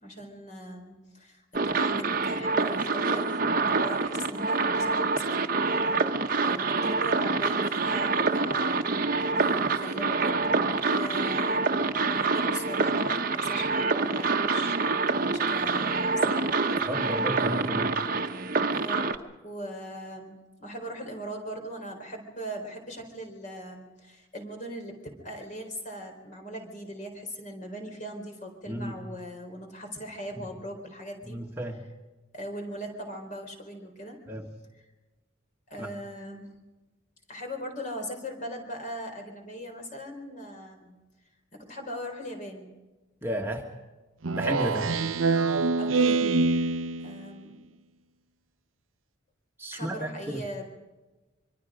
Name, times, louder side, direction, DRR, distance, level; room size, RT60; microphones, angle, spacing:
voice 1, 0.0-5.4 6.4-10.4 10.9-11.7 12.0-16.8 18.7-19.1 19.4-31.4 32.3-34.2 35.7-36.5 37.3-41.0 41.5-42.7 44.6-45.1 45.8-46.3 47.0-47.6 49.7-50.6, equal, 40° left, 4 dB, 4.1 m, -39 dB
sound 1, 1.5-19.2, right 4 dB, 45° right, 1.1 m, -26 dB
voice 2, 16.8-18.0 28.7-28.9 30.3-30.5 31.2-31.8 34.3-34.5 35.8-35.9 43.2-43.6 44.3-44.9 49.6-50.4, equal, 10° right, 0 dB, 1.6 m, -33 dB
Speech synthesizer, 44.2-47.3, right 3 dB, 85° right, 0.7 m, -25 dB
25.5 x 23.5 x 5.1 m, 1.2 s
head